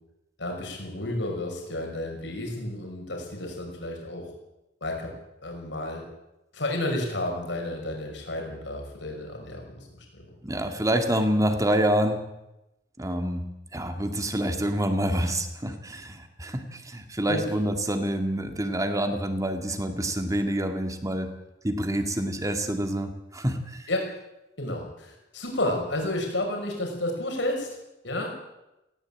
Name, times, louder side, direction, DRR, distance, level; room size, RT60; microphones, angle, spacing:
voice 1, 0.4-4.3 4.8-5.1 5.4-6.0 6.5-10.3 17.3-17.4 23.9-24.1 24.6-27.7 28.0-28.3, left 1 dB, 75° left, 2 dB, 6.0 m, -31 dB
voice 2, 10.4-12.2 13.0-13.4 13.7-21.3 21.6-23.9, right 1 dB, 20° right, 6 dB, 2.3 m, -27 dB
18.0 x 16.5 x 8.9 m, 0.93 s
head